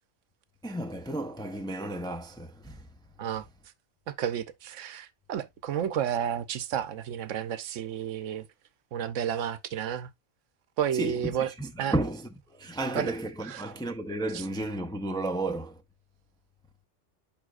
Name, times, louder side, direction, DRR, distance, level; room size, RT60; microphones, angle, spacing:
voice 1, 0.6-2.9 10.9-15.8, right 2 dB, 5° left, 0.5 m, -33 dB
voice 2, 4.1-8.5 8.9-10.1 10.8-11.5 11.8-11.9 12.9-13.1 13.4-13.6 14.3-14.4, right 9 dB, 75° right, 1.0 m, -31 dB
11.0 x 3.8 x 2.4 m
omnidirectional pair, 1.3 m